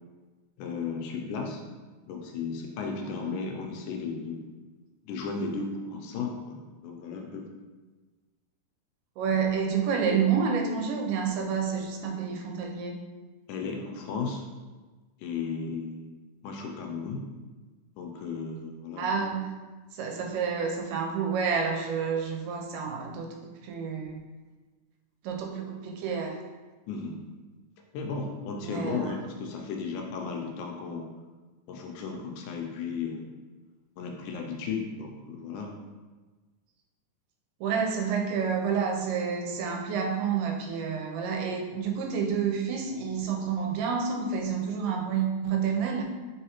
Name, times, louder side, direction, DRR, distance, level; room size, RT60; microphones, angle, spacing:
voice 1, 0.6-1.6 2.1-4.5 5.1-7.5 13.5-14.4 15.2-16.1 16.4-17.2 18.0-19.3 26.9-27.2 27.9-31.1 31.7-33.3 34.0-35.7, left 5 dB, 80° left, 2 dB, 1.9 m, -35 dB
voice 2, 3.2-3.5 9.2-13.0 19.0-19.5 19.9-24.2 25.2-26.4 28.6-29.2 37.6-46.0, right 6 dB, 85° right, 1 dB, 2.1 m, -29 dB
4.7 x 3.4 x 2.9 m, 1.3 s
omnidirectional pair, 3.7 m